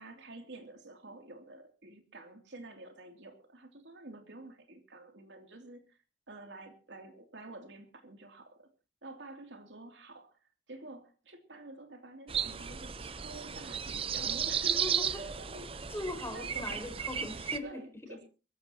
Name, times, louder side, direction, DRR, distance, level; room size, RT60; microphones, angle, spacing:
voice 1, 0.0-6.0 6.3-8.7 9.0-15.8 16.3-16.8 17.6-18.2, right 2 dB, 80° right, 5 dB, 2.8 m, -49 dB
sound 1, 12.3-17.6, right 7 dB, 30° right, 0.7 m, -34 dB
voice 2, 14.7-15.3 15.9-17.8, left 2 dB, 15° left, 4 dB, 4.9 m, -40 dB
23.5 x 14.5 x 2.9 m, 0.33 s
head